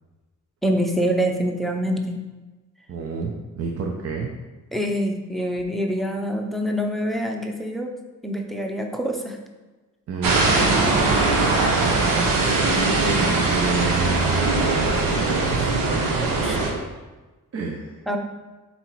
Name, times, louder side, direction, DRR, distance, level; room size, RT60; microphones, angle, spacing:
voice 1, 0.6-2.2 4.7-8.0 8.2-9.4 10.5-11.3 16.2-16.6 18.1-18.2, equal, ahead, 2 dB, 0.6 m, -26 dB
voice 2, 2.9-4.3 10.1-10.8 11.5-15.8 17.5-17.9, right 4 dB, 45° right, 1 dB, 0.7 m, -29 dB
sound 1, 10.2-16.7, right 3 dB, 85° right, 1.3 m, -21 dB
8.5 x 4.1 x 4.5 m, 1.2 s
wide cardioid pair, 175°, 33 cm